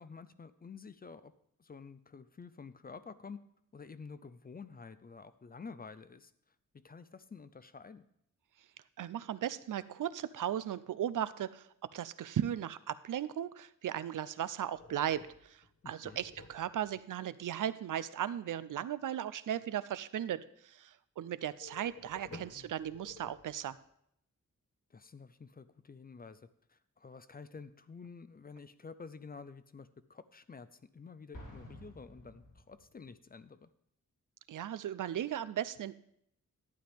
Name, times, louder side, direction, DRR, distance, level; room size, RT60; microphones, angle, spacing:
voice 1, 0.0-1.3 1.6-3.4 3.7-6.3 6.7-8.0 15.8-16.2 22.3-22.7 24.9-33.7, left 5 dB, 30° left, 14 dB, 0.4 m, -50 dB
voice 2, 9.0-23.8 34.5-35.9, right 10 dB, 75° right, 16 dB, 0.5 m, -37 dB
sound 1, 14.7-17.0 21.6-23.9, left 3 dB, 50° left, 1.0 m, -53 dB
Explosion, 31.3-33.1, left 1 dB, 80° left, 3.3 m, -52 dB
11.5 x 9.3 x 3.4 m, 0.72 s
wide cardioid pair, 155°, 31 cm